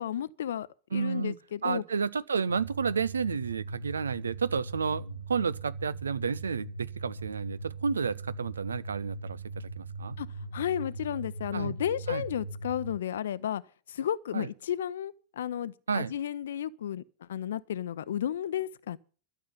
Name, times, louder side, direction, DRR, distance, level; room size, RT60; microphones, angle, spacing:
voice 1, 0.0-1.8 10.2-10.3 10.5-13.6 13.9-19.0, left 10 dB, 60° left, 0.6 m, -33 dB
voice 2, 0.9-1.4 1.6-10.2 11.5-11.8 12.1-12.2 14.3-14.5 15.9-16.1, right 5 dB, 70° right, 0.6 m, -31 dB
sound 1, 2.5-12.9, right 3 dB, 90° left, 1.6 m, -40 dB
12.5 x 6.8 x 9.7 m
figure-of-eight pair, 90°, 0 cm